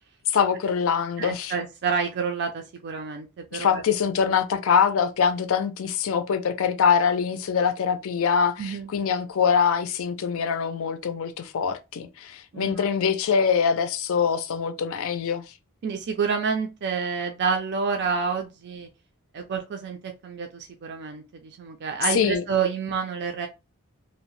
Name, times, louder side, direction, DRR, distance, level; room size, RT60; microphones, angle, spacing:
voice 1, 0.3-1.5 3.5-15.5 22.1-22.4, left 6 dB, 70° left, 0.4 m, -24 dB
voice 2, 1.2-3.8 8.6-8.9 12.5-12.9 15.8-18.9 19.3-23.5, right 5 dB, 55° right, 0.4 m, -28 dB
2.7 x 2.1 x 3.0 m
head